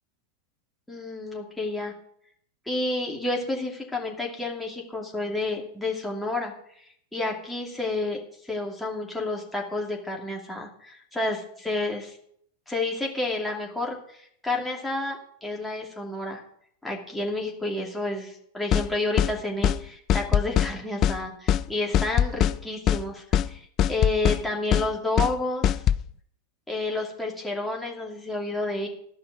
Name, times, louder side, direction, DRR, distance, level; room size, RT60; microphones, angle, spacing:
voice 1, 0.9-1.9 2.7-6.5 7.1-8.2 8.4-12.2 12.7-16.4 16.8-25.8 26.7-28.9, left 2 dB, 5° left, -1 dB, 2.7 m, -30 dB
sound 1, 18.7-18.9 19.2-19.3 19.6-19.8 20.1-20.7 21.0-21.2 21.5-21.6 21.9-22.6 22.9-23.0 23.3-23.5 23.8-24.4 24.7-24.9 25.2-25.3 25.6-26.0, left 10 dB, 35° left, 0.4 m, -21 dB
13.0 x 5.8 x 9.1 m, 0.68 s
figure-of-eight pair, 90°, 0 cm